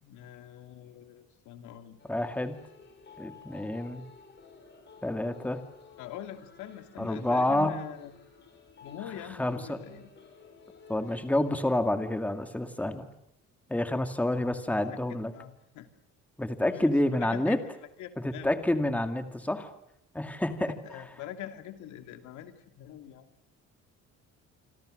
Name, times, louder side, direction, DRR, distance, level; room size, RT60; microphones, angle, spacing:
voice 1, 0.0-2.0 6.0-8.1 8.8-10.1 14.3-15.9 16.7-17.6 18.0-18.5 20.7-23.3, left 11 dB, 85° left, 8 dB, 2.6 m, -44 dB
sound 1, 2.0-11.7, left 6 dB, 40° left, 6.6 m, -53 dB
voice 2, 2.1-2.6 3.2-4.0 5.0-5.6 7.0-7.8 9.4-9.8 10.9-13.1 13.7-15.3 16.4-17.6 18.2-19.7 20.1-20.7, left 1 dB, 5° left, 8 dB, 2.1 m, -28 dB
27.5 x 26.5 x 6.5 m, 0.77 s
cardioid pair, 135°, 29 cm